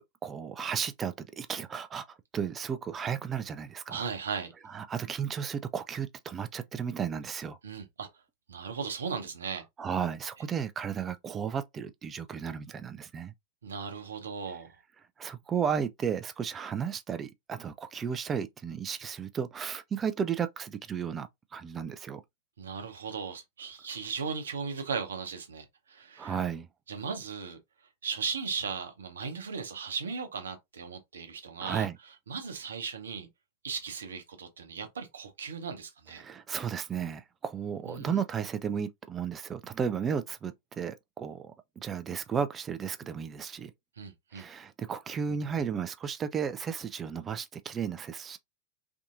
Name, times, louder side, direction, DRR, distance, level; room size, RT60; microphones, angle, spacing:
voice 1, 0.0-4.0 4.7-7.6 9.8-13.3 15.2-22.2 26.2-26.7 31.6-32.0 36.2-43.7 44.3-48.4, right 7 dB, 20° right, 0.3 m, -34 dB
voice 2, 3.9-4.5 7.6-8.1 8.5-9.6 13.6-14.8 22.6-26.4 26.9-27.6 28.0-31.9 32.3-33.3 33.6-36.2 37.8-38.2 44.0-44.4, right 5 dB, 70° right, 0.8 m, -37 dB
3.4 x 2.6 x 2.5 m
figure-of-eight pair, 90°, 0 cm